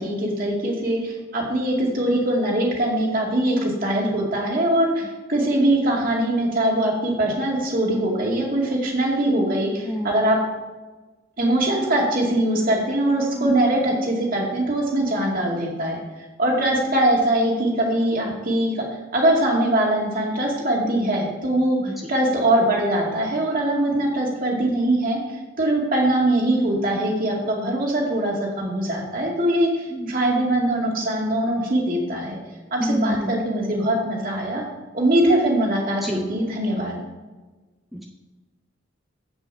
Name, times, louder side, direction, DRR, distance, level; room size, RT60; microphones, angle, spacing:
voice 1, 0.0-10.4 11.4-16.0 16.4-18.7 19.1-25.2 25.6-32.4 32.7-34.6 34.9-37.0, right 1 dB, 45° right, -1 dB, 2.3 m, -22 dB
voice 2, 32.8-33.3 36.0-36.2 37.9-38.0, equal, ahead, 1 dB, 0.5 m, -27 dB
7.8 x 7.0 x 5.6 m, 1.2 s
head